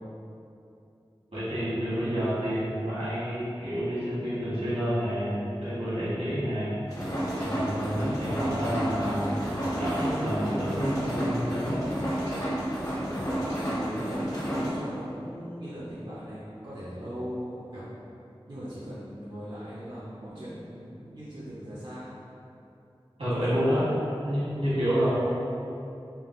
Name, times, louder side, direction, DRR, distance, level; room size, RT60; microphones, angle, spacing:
voice 1, 1.3-6.8 7.4-9.3 9.8-11.8 23.2-23.9 24.2-25.1, equal, 80° right, -12 dB, 1.3 m, -29 dB
sound 1, 6.9-14.7, equal, 35° left, 0.9 m, -30 dB
voice 2, 13.5-17.8 18.5-22.1, equal, 50° right, -9 dB, 0.5 m, -39 dB
3.4 x 2.3 x 2.5 m, 2.7 s
wide cardioid pair, 40°, 10 cm